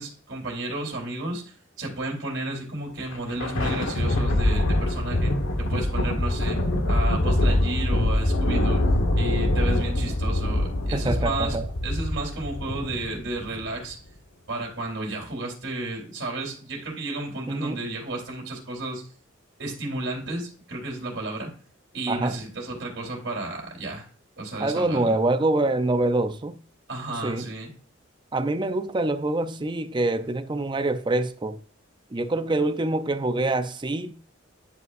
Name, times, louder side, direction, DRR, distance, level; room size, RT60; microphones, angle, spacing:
voice 1, 0.0-5.3 5.6-6.6 6.9-8.8 9.1-11.6 11.8-14.0 14.5-19.0 19.6-21.5 21.9-24.0 24.4-25.2 26.9-27.7, right 2 dB, 65° right, 3.3 m, -32 dB
Thunder, 3.0-13.7, left 1 dB, 85° left, 1.2 m, -24 dB
voice 2, 10.9-11.7 17.5-17.8 22.1-22.4 24.6-26.6 27.2-27.5 28.3-31.6 32.1-34.2, right 2 dB, 25° right, 0.5 m, -25 dB
11.0 x 5.2 x 2.5 m
head